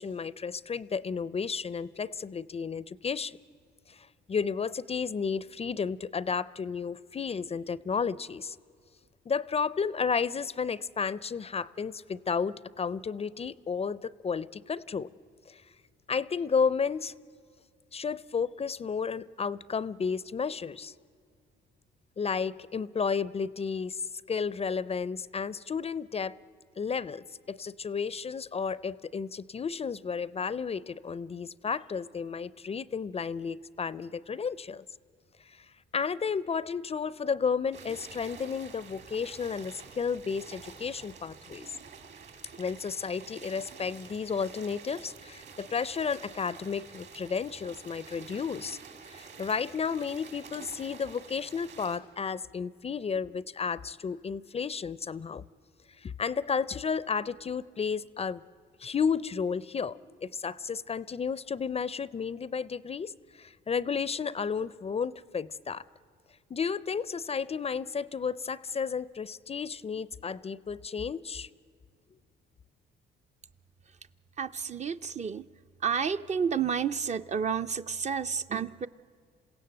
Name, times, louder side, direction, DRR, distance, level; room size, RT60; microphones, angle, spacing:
voice 1, 0.0-3.4 3.9-8.6 9.3-15.1 15.5-15.6 16.1-17.1 17.9-20.9 22.2-26.4 26.8-34.8 35.5-35.7 35.9-41.7 42.6-48.8 49.1-55.4 56.0-58.4 58.8-65.8 66.5-71.5, left 6 dB, 30° left, 19 dB, 0.5 m, -32 dB
sound 1, 37.7-52.0, right 5 dB, 60° right, 2.9 m, -49 dB
voice 2, 74.4-75.4 75.8-78.9, right 6 dB, 35° right, 10 dB, 0.5 m, -30 dB
27.5 x 16.5 x 7.8 m, 2.2 s
cardioid pair, 90°, 20 cm